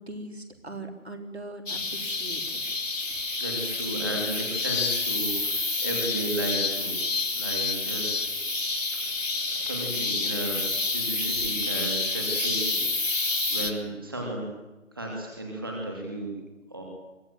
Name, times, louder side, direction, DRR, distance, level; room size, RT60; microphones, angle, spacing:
voice 1, 0.0-2.6, right 2 dB, 55° right, 5 dB, 3.8 m, -40 dB
sound 1, 1.7-13.7, left 3 dB, 75° left, 3.4 m, -28 dB
voice 2, 3.0-7.0 7.3-8.3 8.9-9.2 9.5-10.6 10.9-14.5 14.9-16.3 16.7-16.8, right 1 dB, 15° right, -1 dB, 2.7 m, -34 dB
24.0 x 17.0 x 9.2 m, 1.0 s
figure-of-eight pair, 180°, 39 cm